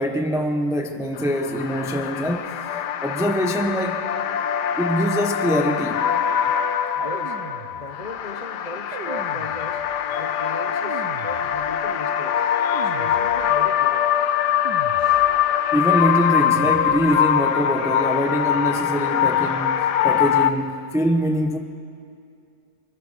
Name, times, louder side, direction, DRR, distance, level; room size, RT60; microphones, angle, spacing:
voice 1, 0.0-2.6 3.0-4.0 4.8-6.1 10.1-10.2 12.6-12.9 15.7-21.6, equal, 5° right, 0.6 m, -24 dB
sound 1, 1.2-20.5, left 9 dB, 85° left, 1.4 m, -23 dB
voice 2, 6.9-7.4 7.7-12.4 12.8-14.1 15.0-15.2, left 1 dB, 30° left, 1.1 m, -38 dB
sound 2, 7.0-8.2 8.9-10.1 10.8-12.0 12.7-13.8 14.7-15.6 16.5-17.4, right 6 dB, 90° right, 1.7 m, -39 dB
24.5 x 22.0 x 6.4 m
omnidirectional pair, 1.8 m